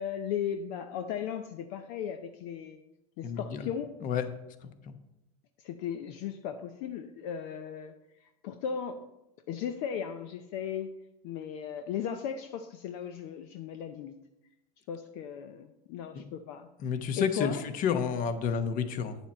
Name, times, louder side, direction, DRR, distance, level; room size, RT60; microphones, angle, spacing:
voice 1, 0.0-2.8 3.2-3.9 5.6-7.9 8.2-9.1 9.5-10.9 11.2-14.1 14.9-16.7 17.2-17.6, left 8 dB, 65° left, 7 dB, 0.7 m, -36 dB
voice 2, 3.2-3.7 4.0-4.3 4.9-5.0 16.1-16.2 16.8-19.2, left 7 dB, 45° left, 9 dB, 1.0 m, -30 dB
9.0 x 7.0 x 4.3 m, 0.88 s
supercardioid pair, 105°, 20 cm